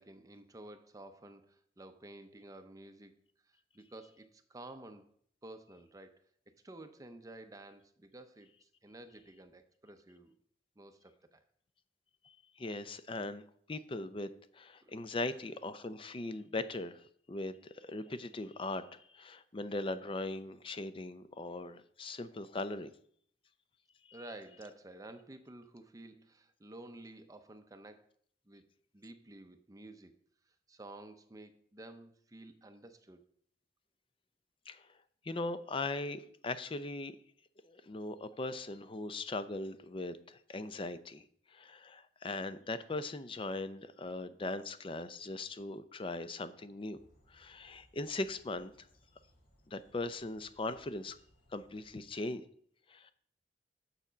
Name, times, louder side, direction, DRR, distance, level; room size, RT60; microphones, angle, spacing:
voice 1, 0.0-3.2 3.4-5.1 5.4-10.4 10.8-11.4 14.8-14.9 24.1-28.1 28.5-28.7 28.9-30.1 30.7-33.2, right 1 dB, 20° right, 8 dB, 0.6 m, -52 dB
voice 2, 12.6-22.9 34.7-34.8 35.2-37.1 37.7-41.2 41.5-47.0 47.3-48.7 49.7-51.2 51.5-52.4 52.9-53.1, left 2 dB, 30° left, 12 dB, 0.5 m, -39 dB
sound 1, 46.9-52.0, equal, 60° left, 3.9 m, -68 dB
7.1 x 6.9 x 5.0 m, 0.62 s
head